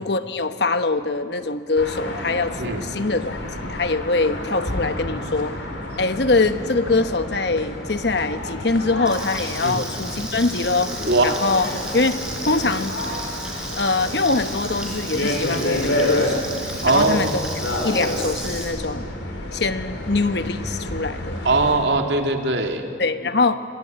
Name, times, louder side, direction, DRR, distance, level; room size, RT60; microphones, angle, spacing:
voice 1, 0.0-5.5 6.0-10.9 11.2-11.7 11.9-12.9 13.8-16.5 16.9-17.4 17.8-19.1 19.5-21.4 23.0-23.6, left 3 dB, 65° left, 10 dB, 1.2 m, -23 dB
sound 1, 1.8-21.8, left 1 dB, 85° left, 4.9 m, -29 dB
Frying (food), 9.1-18.6, right 1 dB, 5° right, 5.0 m, -34 dB
voice 2, 11.0-11.3 16.8-17.4 21.4-22.9, right 2 dB, 70° right, 4 dB, 2.5 m, -20 dB
26.5 x 22.0 x 9.4 m, 2.4 s
head